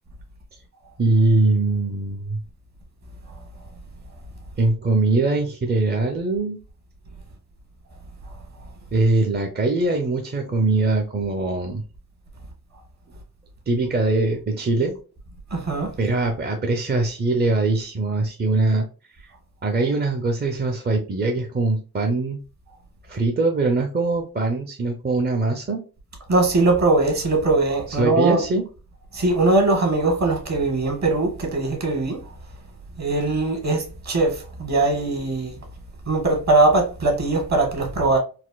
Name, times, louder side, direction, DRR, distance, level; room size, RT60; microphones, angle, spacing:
voice 1, 1.0-2.4 4.6-6.6 8.9-11.8 13.7-14.9 16.0-18.9 19.6-22.4 23.1-25.8 27.9-28.7, right 2 dB, 30° right, 0.5 m, -22 dB
voice 2, 15.5-15.9 26.3-28.4 29.1-32.2 33.0-35.6 36.1-38.2, right 2 dB, 50° right, 1.3 m, -21 dB
4.1 x 2.5 x 2.3 m
wide cardioid pair, 105°, 36 cm